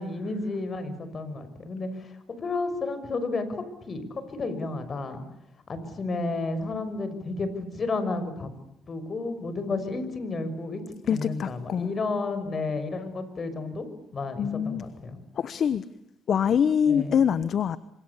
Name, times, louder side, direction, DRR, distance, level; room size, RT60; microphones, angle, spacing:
voice 1, 0.0-5.2 5.7-8.5 8.9-15.2 16.9-17.2, left 3 dB, 40° left, 6.1 m, -32 dB
voice 2, 11.1-11.9 14.4-14.8 15.4-15.8 16.3-17.8, left 8 dB, 60° left, 1.1 m, -24 dB
27.0 x 25.5 x 8.5 m
cardioid pair, 90°, 0 cm